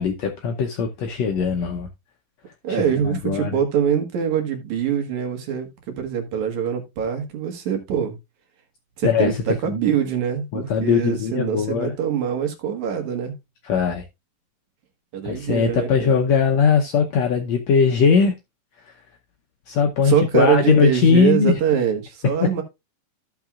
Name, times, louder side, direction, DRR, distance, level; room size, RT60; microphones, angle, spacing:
voice 1, 0.0-1.9 2.7-3.5 9.0-9.4 9.6-9.7 10.5-11.9 13.6-14.0 15.2-18.3 19.7-21.5, left 6 dB, 75° left, 1.6 m, -20 dB
voice 2, 2.6-8.2 9.0-13.3 15.1-16.2 20.0-22.6, right 8 dB, 60° right, 2.7 m, -23 dB
14.5 x 5.9 x 2.4 m
omnidirectional pair, 4.0 m